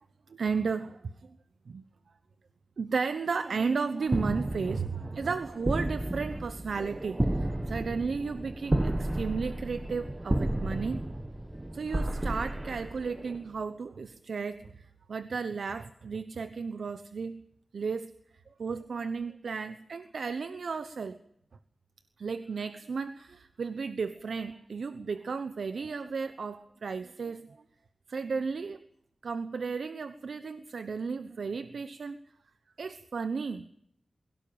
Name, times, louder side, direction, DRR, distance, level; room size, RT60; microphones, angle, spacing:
voice 1, 0.3-1.3 1.7-1.8 2.8-11.0 11.7-17.4 17.7-18.1 18.6-21.2 22.2-27.6 28.1-28.8 29.2-32.2 32.8-33.7, right 5 dB, 80° right, 11 dB, 1.1 m, -34 dB
sound 1, 4.1-13.6, right 1 dB, 20° right, 1.2 m, -32 dB
22.0 x 17.0 x 9.0 m, 0.73 s
wide cardioid pair, 100°, 0 cm